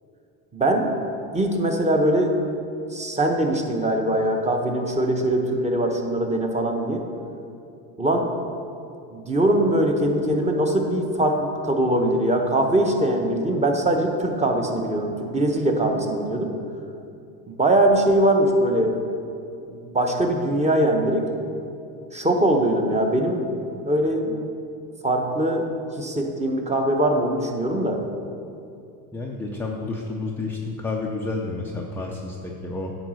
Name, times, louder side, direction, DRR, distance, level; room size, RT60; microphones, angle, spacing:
voice 1, 0.5-0.9 1.3-2.3 2.9-7.0 8.0-8.3 9.1-16.5 17.5-18.9 19.7-21.2 22.1-23.5 23.7-24.4 25.0-25.7 26.0-28.0, right 1 dB, 15° right, 3 dB, 0.8 m, -22 dB
voice 2, 29.1-32.9, left 3 dB, 5° left, -2 dB, 0.3 m, -30 dB
9.1 x 3.9 x 6.2 m, 2.6 s
supercardioid pair, 110°, 48 cm